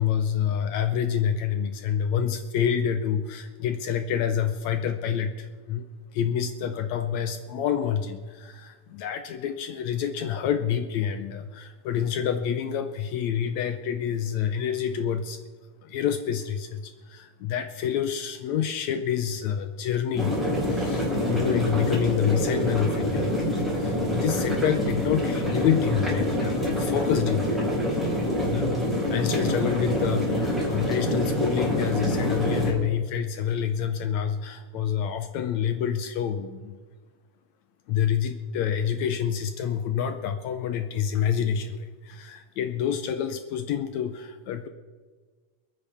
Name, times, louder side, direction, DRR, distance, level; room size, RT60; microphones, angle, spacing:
voice 1, 0.0-5.9 6.1-15.5 15.8-20.4 20.7-23.5 23.8-27.7 28.5-36.8 37.9-44.7, left 8 dB, 75° left, 7 dB, 1.8 m, -28 dB
sound 1, 20.1-32.7, left 1 dB, ahead, 4.6 m, -26 dB
27.5 x 9.4 x 3.5 m, 1.4 s
omnidirectional pair, 3.7 m